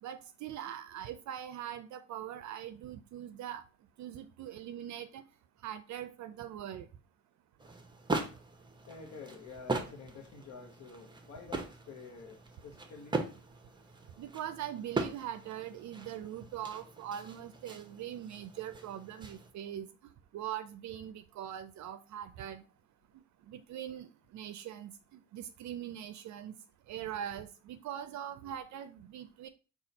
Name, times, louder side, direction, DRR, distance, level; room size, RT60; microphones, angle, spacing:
voice 1, 0.0-3.6 4.0-5.2 5.6-6.9 14.2-22.6 23.5-26.6 26.9-29.5, right 10 dB, 70° right, 0.4 m, -42 dB
sound 1, 7.6-19.5, right 3 dB, 15° right, 0.7 m, -40 dB
voice 2, 8.9-13.2, left 4 dB, 65° left, 0.9 m, -49 dB
4.1 x 2.4 x 4.0 m
cardioid pair, 90°, 30 cm